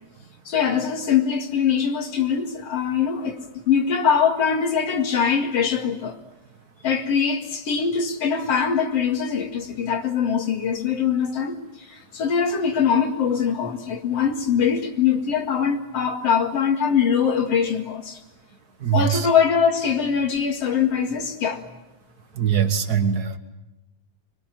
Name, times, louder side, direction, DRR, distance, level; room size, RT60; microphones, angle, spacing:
voice 1, 0.5-6.2 6.8-18.2 18.9-21.6, left 7 dB, 55° left, 3.0 m, -22 dB
voice 2, 18.8-19.3 22.4-23.4, right 8 dB, 40° right, 1.6 m, -22 dB
25.5 x 24.5 x 9.3 m
omnidirectional pair, 3.3 m